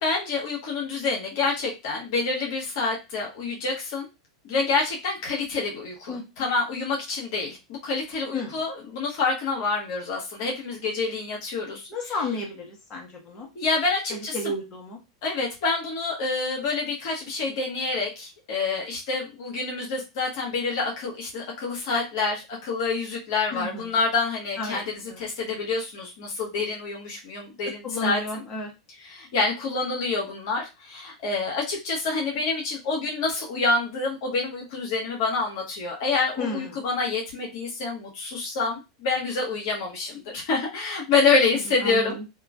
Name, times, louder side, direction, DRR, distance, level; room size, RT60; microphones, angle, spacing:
voice 1, 0.0-4.1 4.4-12.2 13.5-14.4 15.2-28.4 29.0-42.2, left 4 dB, 60° left, -1 dB, 1.0 m, -27 dB
voice 2, 11.9-13.5 14.1-15.0 23.5-23.9 24.6-24.8 25.1-25.2 27.8-28.7 36.4-36.7 41.8-42.2, left 2 dB, 35° left, -1 dB, 1.1 m, -32 dB
2.9 x 2.4 x 2.3 m, 0.25 s
hypercardioid pair, 100°, 2 cm